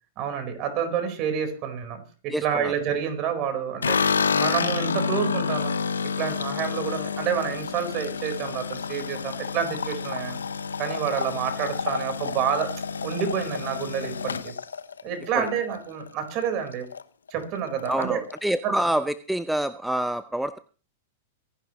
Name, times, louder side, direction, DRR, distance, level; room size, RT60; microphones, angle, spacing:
voice 1, 0.2-4.0 4.3-5.7 6.2-10.4 10.8-12.7 13.0-14.5 15.0-16.8 17.3-18.2 18.6-18.7, right 8 dB, 45° right, 6 dB, 4.5 m, -28 dB
voice 2, 2.3-2.7 15.4-15.5 17.9-20.6, right 1 dB, 5° right, 12 dB, 0.7 m, -27 dB
sound 1, 3.8-16.1 16.4-17.0 17.3-17.4 17.7-18.4, left 5 dB, 90° left, 0.9 m, -29 dB
24.0 x 11.0 x 3.1 m, 0.36 s
hypercardioid pair, 105°, 0 cm